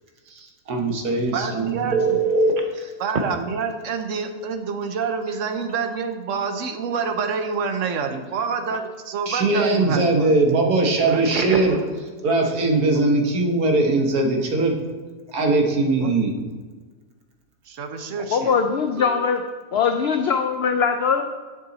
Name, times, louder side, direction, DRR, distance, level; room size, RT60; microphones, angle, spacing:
voice 1, 0.4-1.9 2.7-2.9 9.3-11.8 12.2-14.7 15.3-16.4, right 2 dB, 75° right, 1 dB, 1.7 m, -20 dB
voice 2, 1.3-2.2 3.0-10.3 11.0-11.8 16.0-16.1 17.7-18.6, right 5 dB, 60° right, 7 dB, 1.0 m, -28 dB
Telephone, 1.9-2.6 3.1-3.2 5.0-5.1 5.6-5.7 11.0-11.9 19.0-19.2, right 3 dB, 45° right, 0.7 m, -23 dB
voice 3, 18.3-19.4 19.7-21.3, left 6 dB, 85° left, 6 dB, 0.5 m, -21 dB
7.9 x 6.8 x 4.1 m, 1.4 s
omnidirectional pair, 1.6 m